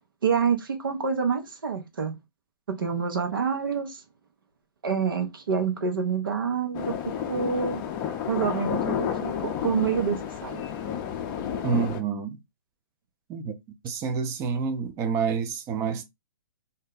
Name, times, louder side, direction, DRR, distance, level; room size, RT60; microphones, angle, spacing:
voice 1, 0.2-2.1 2.7-4.0 4.8-7.8 8.3-10.6, right 6 dB, 75° right, 1.0 m, -27 dB
sound 1, 6.7-12.0, left 8 dB, 30° left, 0.5 m, -31 dB
voice 2, 11.6-12.4 13.3-13.5 13.8-16.0, right 6 dB, 25° right, 0.6 m, -28 dB
2.7 x 2.1 x 3.8 m
hypercardioid pair, 125°, 12 cm